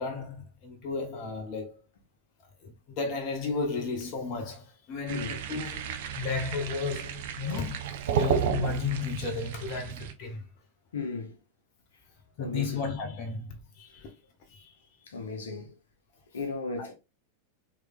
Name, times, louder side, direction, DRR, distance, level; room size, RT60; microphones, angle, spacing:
voice 1, 0.0-1.8 2.6-10.4 12.4-14.1 14.5-14.7 16.8-16.9, left 4 dB, 40° left, 1.0 m, -34 dB
sound 1, 5.1-10.1, right 7 dB, 55° right, 0.7 m, -32 dB
voice 2, 10.9-11.4 12.4-12.8 15.1-15.7 16.3-16.9, left 4 dB, 65° left, 1.1 m, -35 dB
4.8 x 3.3 x 2.4 m
figure-of-eight pair, 90°, 0 cm